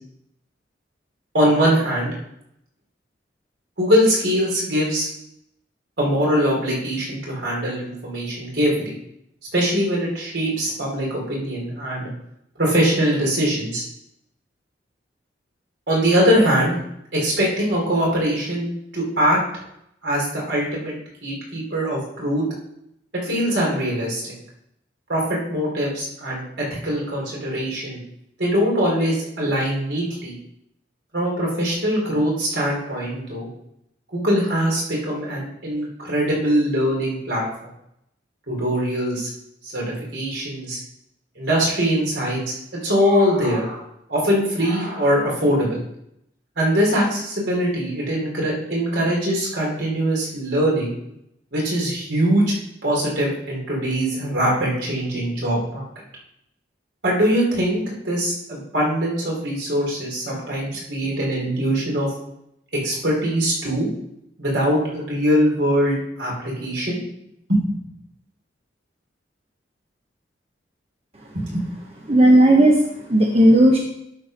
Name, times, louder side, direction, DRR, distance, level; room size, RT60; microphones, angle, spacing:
voice 1, 1.3-2.1 3.8-5.1 6.0-8.9 9.5-12.1 12.6-13.8 15.9-16.8 17.1-19.4 20.0-20.9 21.2-22.4 23.2-24.3 25.1-28.0 28.4-30.3 31.1-33.5 34.1-37.4 38.5-39.3 39.6-39.8 40.1-40.8 41.4-42.4 42.8-43.8 44.1-45.8 46.6-50.9 51.5-52.5 52.8-55.9 57.0-62.1 62.8-63.9 64.4-66.3 66.6-67.0 67.5-67.9 71.3-71.6, equal, 70° right, -3 dB, 4.0 m, -22 dB
voice 2, 72.1-73.8, right 1 dB, 35° right, 0 dB, 0.9 m, -14 dB
12.0 x 4.6 x 5.2 m, 0.78 s
head